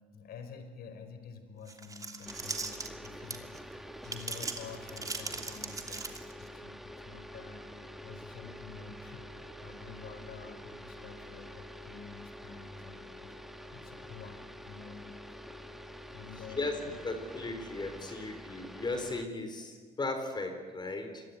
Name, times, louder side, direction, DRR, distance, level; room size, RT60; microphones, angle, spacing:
voice 1, 0.1-3.7 4.0-15.1 16.1-16.9, left 6 dB, 65° left, 8 dB, 5.0 m, -49 dB
sound 1, 1.7-3.6 4.0-6.5, right 3 dB, 20° right, 2.9 m, -39 dB
sound 2, 2.2-19.3, equal, ahead, 1.7 m, -47 dB
voice 2, 17.0-21.2, left 2 dB, 25° left, 6 dB, 4.0 m, -36 dB
26.5 x 22.5 x 9.6 m, 1.5 s
cardioid pair, 110°, 17 cm